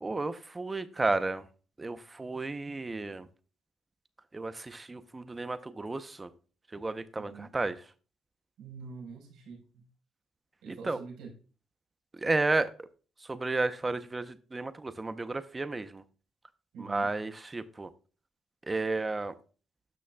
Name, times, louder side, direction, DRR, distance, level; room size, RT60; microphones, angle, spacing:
voice 1, 0.0-1.4 1.8-3.3 4.3-6.3 6.7-7.8 10.7-11.0 12.1-12.7 13.2-16.0 16.8-17.9 18.6-19.3, right 3 dB, 20° right, 12 dB, 0.7 m, -32 dB
voice 2, 7.2-7.5 8.6-9.8 10.6-11.3 16.7-17.1, right 5 dB, 90° right, -1 dB, 4.6 m, -45 dB
12.5 x 6.1 x 2.3 m, 0.37 s
cardioid pair, 90°, 0 cm